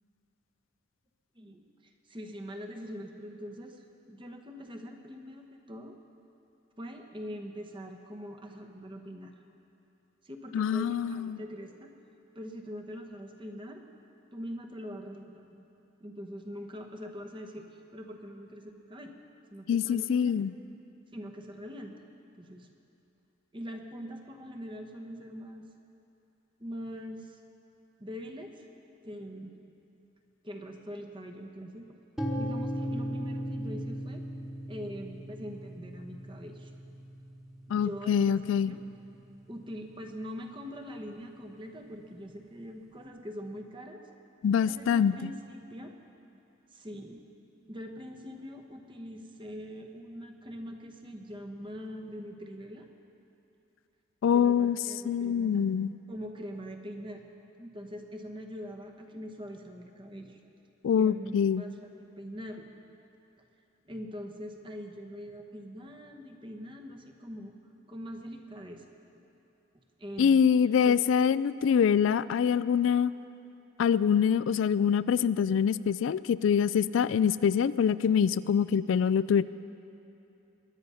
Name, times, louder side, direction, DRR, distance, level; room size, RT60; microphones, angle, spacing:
voice 1, 1.3-6.0 6.8-9.3 10.2-11.9 12.3-13.8 14.3-15.7 16.0-19.1 19.5-20.5 21.1-22.0 22.4-22.7 23.5-25.6 26.6-27.4 28.0-28.7 29.0-29.5 30.4-31.9 32.3-34.2 34.7-36.7 37.7-38.8 39.5-44.0 44.7-45.9 46.7-47.2 47.7-52.9 54.3-55.6 56.1-57.3 57.6-60.4 60.9-62.7 63.8-67.5 67.9-68.8 70.0-70.3 70.8-71.0, equal, 25° right, 3 dB, 1.1 m, -43 dB
voice 2, 10.5-11.4 19.7-20.5 37.7-38.7 44.4-45.3 54.2-54.8 55.1-55.9 60.8-61.6 70.2-73.1 73.8-79.4, left 7 dB, 75° left, 16 dB, 0.3 m, -25 dB
sound 1, 32.2-40.1, equal, ahead, 1.3 m, -38 dB
22.0 x 9.9 x 5.6 m, 2.9 s
head